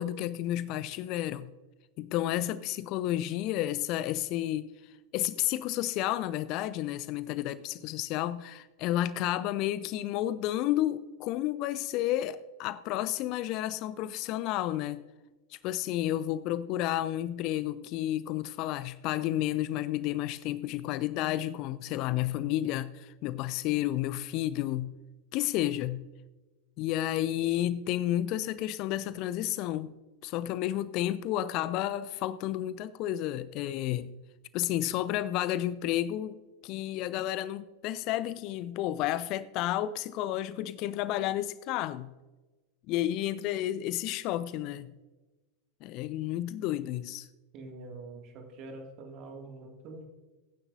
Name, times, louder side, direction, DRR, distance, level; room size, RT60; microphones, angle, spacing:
voice 1, 0.0-1.5 2.0-15.0 15.5-24.9 25.3-26.1 26.8-29.9 30.2-34.1 34.5-36.4 36.6-42.1 42.9-44.9 45.8-47.3, left 13 dB, 40° left, 17 dB, 0.4 m, -31 dB
voice 2, 47.5-50.0, right 2 dB, 40° right, 3 dB, 2.1 m, -45 dB
22.0 x 9.8 x 2.6 m, 1.2 s
figure-of-eight pair, 90°, 0 cm